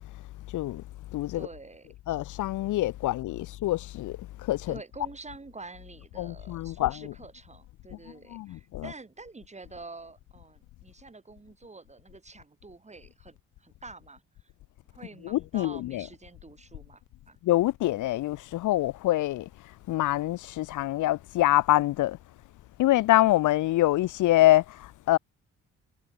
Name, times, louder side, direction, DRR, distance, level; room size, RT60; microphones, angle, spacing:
voice 1, 0.5-0.8 1.1-1.5 2.1-4.8 6.2-7.1 8.3-8.9 15.2-16.1 17.4-19.5 19.9-22.2 22.8-25.2, left 16 dB, 80° left, 1.1 m, -25 dB
voice 2, 1.3-1.9 4.7-14.5 14.9-17.4, right 3 dB, 20° right, 6.2 m, -47 dB
cardioid pair, 90°, 30 cm